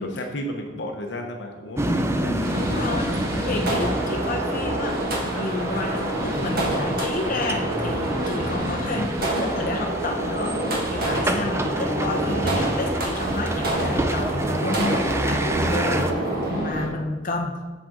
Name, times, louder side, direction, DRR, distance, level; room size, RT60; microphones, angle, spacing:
voice 1, 0.0-3.3 3.6-3.8 10.9-11.5 16.4-16.8, left 1 dB, 75° left, 2 dB, 1.0 m, -34 dB
sound 1, 1.8-16.1, right 1 dB, 15° right, 0.5 m, -28 dB
voice 2, 2.3-16.2 16.5-17.6, left 2 dB, 50° left, 1 dB, 1.0 m, -30 dB
sound 2, 2.4-16.9, right 1 dB, 55° right, 1.6 m, -28 dB
7.6 x 7.3 x 3.8 m, 1.2 s
head